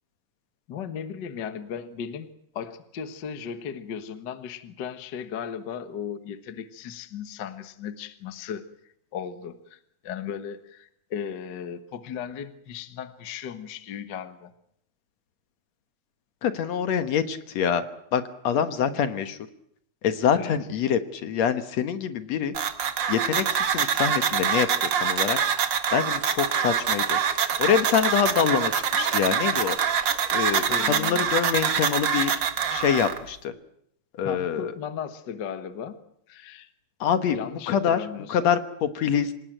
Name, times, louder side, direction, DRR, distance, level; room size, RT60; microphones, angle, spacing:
voice 1, 0.7-8.6 9.1-14.5 20.3-20.5 30.7-31.3 34.2-36.0 36.3-36.7 37.3-38.5, left 7 dB, 50° left, 10 dB, 1.5 m, -36 dB
voice 2, 16.4-17.8 18.1-19.4 20.0-22.5 23.1-24.7 24.9-25.4 25.9-27.2 27.6-29.8 30.3-32.3 32.7-33.5 34.2-34.7 37.0-37.4 37.7-39.3, left 8 dB, 65° left, 10 dB, 2.4 m, -25 dB
sound 1, 22.5-33.2, right 7 dB, 45° right, 1.7 m, -25 dB
sound 2, 25.9-27.6 28.1-30.4 30.8-31.3, equal, 80° right, 5.7 m, -46 dB
26.5 x 18.5 x 9.1 m, 0.73 s
omnidirectional pair, 3.5 m